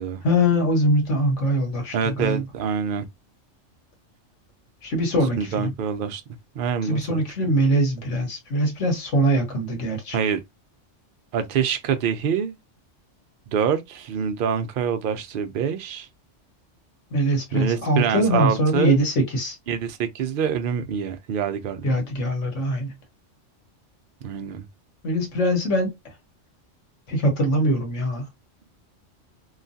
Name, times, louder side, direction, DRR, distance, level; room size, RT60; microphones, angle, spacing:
voice 1, 0.2-2.4 4.8-5.7 6.8-10.2 17.1-19.6 21.8-22.9 25.0-25.9 27.1-28.3, equal, 75° left, 1.5 m, -22 dB
voice 2, 1.9-3.1 5.4-6.2 6.5-7.2 10.1-10.4 11.3-12.5 13.5-16.1 17.5-19.0 19.7-21.9 24.2-24.7, right 7 dB, 60° right, 0.6 m, -25 dB
3.1 x 2.2 x 2.6 m
omnidirectional pair, 1.2 m